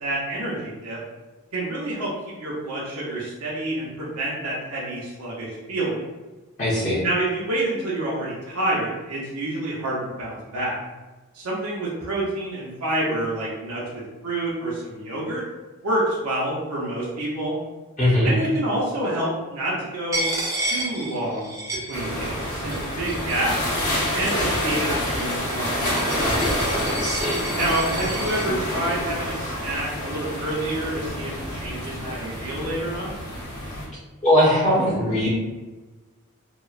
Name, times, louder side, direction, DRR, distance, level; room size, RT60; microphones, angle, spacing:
voice 1, 0.0-1.0 1.5-2.1 2.4-6.0 7.0-10.8 11.3-15.4 15.8-17.6 18.2-20.3 20.6-21.6 21.9-23.7 24.1-26.5 27.6-33.1, right 1 dB, 85° right, -6 dB, 0.6 m, -28 dB
voice 2, 6.6-7.0 18.0-18.3 27.0-27.4 34.2-35.3, left 1 dB, 30° left, -8 dB, 0.6 m, -20 dB
Coin (dropping), 20.1-22.4 22.7-23.5 24.2-28.5, right 2 dB, 15° right, 0.4 m, -31 dB
sound 1, 21.9-33.9, equal, 70° left, 1.2 m, -27 dB
2.9 x 2.0 x 2.3 m, 1.2 s
head